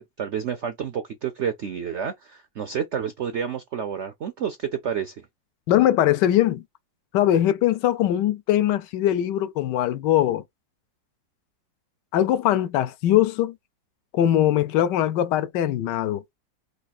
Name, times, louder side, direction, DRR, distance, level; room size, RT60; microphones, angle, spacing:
voice 1, 0.0-5.3, right 7 dB, 70° right, 0.6 m, -30 dB
voice 2, 5.7-6.6 7.1-10.4 12.1-13.5 14.1-16.2, left 12 dB, 75° left, 1.2 m, -21 dB
5.0 x 2.5 x 4.1 m
omnidirectional pair, 2.0 m